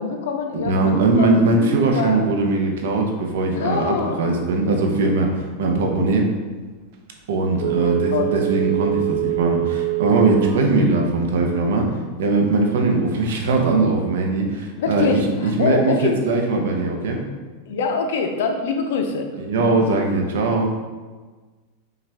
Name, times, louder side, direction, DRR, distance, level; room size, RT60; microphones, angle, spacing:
voice 1, 0.0-2.3 3.5-4.5 5.3-5.4 7.8-8.3 14.8-16.2 17.7-19.3 19.6-19.7, left 5 dB, 75° left, 4 dB, 0.6 m, -25 dB
voice 2, 0.5-6.3 7.3-11.9 12.2-17.2 19.5-20.7, right 3 dB, 80° right, 2 dB, 0.8 m, -20 dB
Telephone, 7.6-10.7 11.1-11.2, right 23 dB, 50° right, 0.4 m, -24 dB
5.5 x 2.4 x 3.4 m, 1.3 s
supercardioid pair, 150°, 0 cm